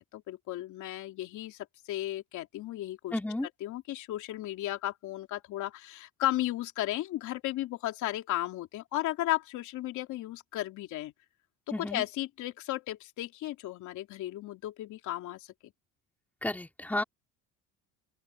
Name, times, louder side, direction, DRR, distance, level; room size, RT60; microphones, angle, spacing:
voice 1, 0.0-3.1 3.6-11.1 11.8-15.7, left 15 dB, 60° left, 3.0 m, -35 dB
voice 2, 3.1-3.5 11.7-12.0 16.4-17.0, left 1 dB, 5° left, 3.3 m, -32 dB
open air
cardioid pair, 130°, 33 cm